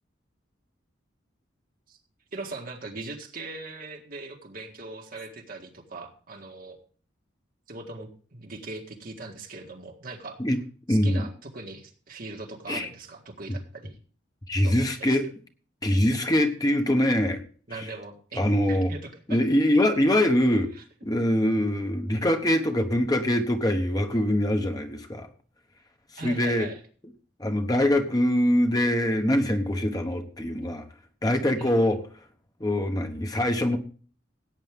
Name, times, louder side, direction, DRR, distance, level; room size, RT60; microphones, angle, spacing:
voice 1, 2.3-6.8 7.7-10.4 10.9-13.9 14.6-15.3 17.7-19.4 20.7-20.8 26.2-26.8 31.6-32.0, right 3 dB, 50° right, 3 dB, 1.8 m, -40 dB
voice 2, 10.9-11.2 12.7-12.9 14.5-15.2 15.8-17.4 17.8-17.9 18.3-18.9 19.3-20.7 21.0-25.3 26.1-26.7 27.4-30.8 31.2-32.0 32.6-33.8, left 1 dB, 20° left, 5 dB, 1.1 m, -23 dB
16.5 x 9.1 x 3.7 m, 0.42 s
head